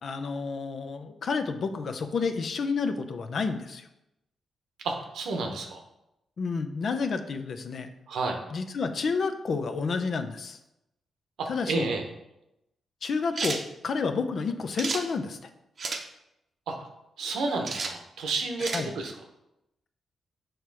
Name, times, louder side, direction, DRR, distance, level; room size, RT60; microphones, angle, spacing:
voice 1, 0.0-3.8 6.4-7.9 8.5-10.6 11.5-11.9 13.0-15.4 18.7-18.9, left 4 dB, 65° left, 7 dB, 0.6 m, -30 dB
voice 2, 4.8-5.8 8.1-8.4 11.4-12.1 16.7-16.8 17.2-19.1, right 3 dB, 80° right, 3 dB, 0.9 m, -31 dB
sound 1, 13.3-13.6 14.7-15.0 15.8-16.0 17.7-17.9 18.6-18.9, right 4 dB, 55° right, 0.7 m, -31 dB
6.5 x 3.1 x 4.7 m, 0.88 s
supercardioid pair, 60°, 0 cm